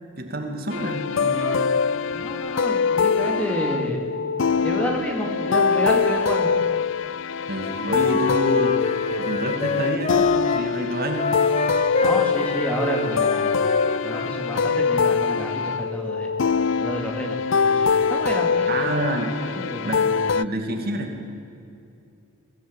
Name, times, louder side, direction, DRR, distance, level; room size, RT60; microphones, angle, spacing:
voice 1, 0.2-1.7 7.5-8.8 9.2-11.8 18.7-19.4 19.8-20.0 20.3-21.1, right 1 dB, 45° right, 3 dB, 2.4 m, -28 dB
sound 1, 0.7-20.4, left 5 dB, 60° left, 0.4 m, -23 dB
voice 2, 2.1-4.0 4.6-6.5 12.0-16.3 16.8-19.0 19.4-20.0, equal, 5° left, 1 dB, 2.5 m, -29 dB
Wind instrument woodwind instrument, 7.6-10.7 11.1-14.4, left 3 dB, 30° left, 0.9 m, -27 dB
23.0 x 15.5 x 8.9 m, 2.7 s
head